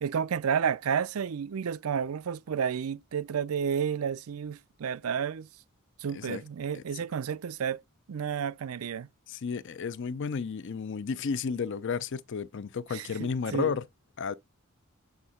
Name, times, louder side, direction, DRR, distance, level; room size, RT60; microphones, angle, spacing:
voice 1, 0.0-5.5 6.0-7.8 8.1-9.1 12.9-13.7, right 7 dB, 90° right, 0.4 m, -31 dB
voice 2, 6.1-6.4 6.7-6.8 9.3-13.9 14.2-14.3, left 5 dB, 60° left, 0.5 m, -32 dB
8.0 x 3.6 x 5.6 m
head